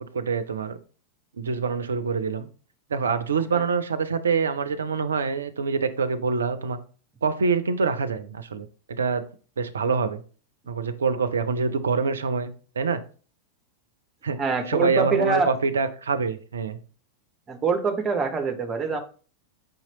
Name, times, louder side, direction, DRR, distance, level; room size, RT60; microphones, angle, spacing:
voice 1, 0.0-0.8 1.4-2.5 2.9-6.8 7.2-9.2 9.6-10.2 10.7-13.0 14.2-14.4 14.7-16.8, right 5 dB, 70° right, 12 dB, 0.4 m, -25 dB
voice 2, 14.4-15.5 17.5-19.0, right 4 dB, 20° right, 6 dB, 0.7 m, -24 dB
5.1 x 2.9 x 2.9 m, 0.39 s
figure-of-eight pair, 90°, 0 cm